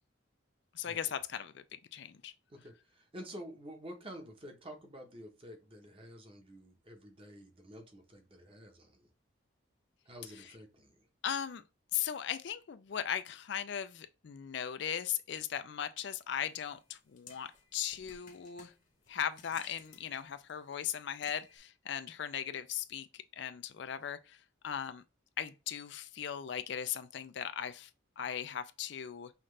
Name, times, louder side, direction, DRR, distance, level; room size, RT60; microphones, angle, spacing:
voice 1, 0.7-2.3 11.2-11.6 11.9-18.7 19.1-25.0 25.4-27.9 28.2-29.3, left 9 dB, 60° left, 0.4 m, -38 dB
voice 2, 2.5-9.1 10.0-11.1, equal, 25° right, 0.9 m, -49 dB
sound 1, 16.5-21.6, left 6 dB, 40° left, 0.9 m, -57 dB
5.7 x 2.4 x 3.2 m
head